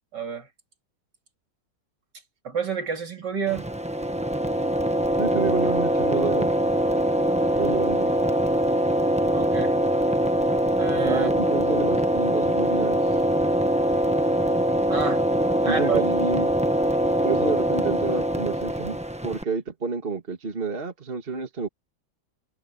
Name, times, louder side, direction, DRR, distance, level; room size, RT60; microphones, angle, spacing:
voice 1, 0.1-0.5 2.4-3.7 9.3-9.7 10.8-11.3 13.8-13.9 14.9-15.2 15.6-16.0, right 6 dB, 60° right, 3.7 m, -29 dB
sound 1, 3.5-19.4, equal, 5° right, 0.8 m, -23 dB
voice 2, 5.2-6.5 7.6-8.1 11.0-13.0 15.7-16.5 17.2-19.0 19.2-21.7, right 4 dB, 30° right, 2.3 m, -29 dB
omnidirectional pair, 2.1 m